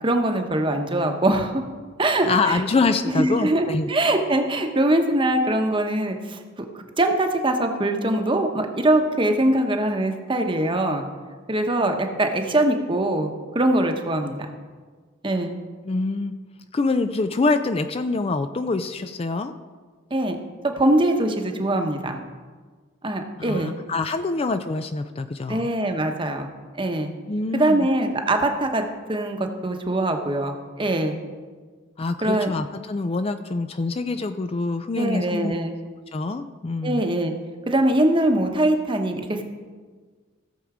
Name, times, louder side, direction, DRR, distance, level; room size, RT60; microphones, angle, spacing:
voice 1, 0.0-1.6 2.0-2.6 3.1-11.1 11.5-13.3 13.5-14.5 15.2-15.5 20.1-20.4 20.6-22.2 23.0-23.8 25.5-26.5 26.7-27.1 27.5-31.2 32.2-32.5 34.9-35.7 36.8-37.3 37.7-39.4, right 1 dB, 25° right, 5 dB, 1.0 m, -22 dB
voice 2, 2.3-3.9 15.9-16.3 16.7-19.5 23.4-25.6 27.3-27.9 32.0-35.6 36.1-37.0, left 3 dB, 30° left, 9 dB, 0.4 m, -25 dB
15.5 x 7.1 x 4.9 m, 1.5 s
head